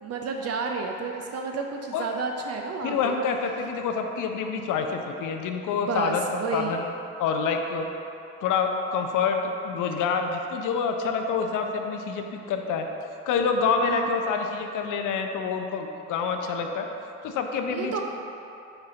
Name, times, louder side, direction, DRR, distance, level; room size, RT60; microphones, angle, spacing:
voice 1, 0.0-3.2 5.7-6.8 13.8-14.1 17.7-18.0, right 4 dB, 40° right, 2 dB, 0.5 m, -31 dB
voice 2, 2.8-6.9 7.2-7.9 8.4-12.9 13.2-16.9 17.2-18.0, left 5 dB, 50° left, 4 dB, 0.7 m, -27 dB
5.8 x 4.1 x 3.9 m, 2.8 s
hypercardioid pair, 55°, 39 cm